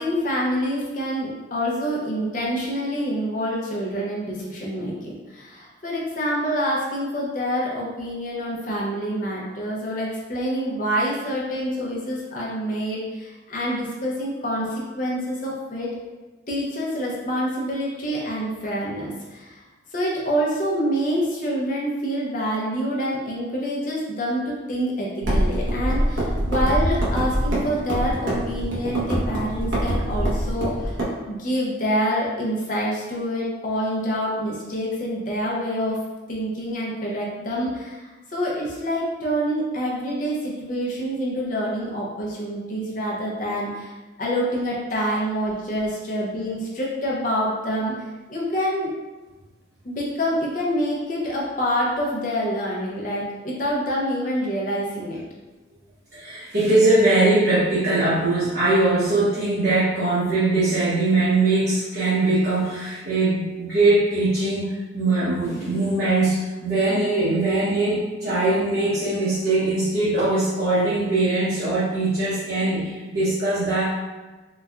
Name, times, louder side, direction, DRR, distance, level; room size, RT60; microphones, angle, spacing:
voice 1, 0.0-15.9 16.5-19.6 19.9-31.0 31.3-36.0 36.3-43.9 44.2-48.0 48.3-48.9 49.8-55.2, equal, 40° left, -4 dB, 0.6 m, -26 dB
sound 1, 25.2-31.0, equal, 80° right, 0.9 m, -24 dB
voice 2, 56.1-73.9, right 2 dB, 55° right, -11 dB, 0.8 m, -21 dB
4.0 x 2.2 x 2.3 m, 1.2 s
head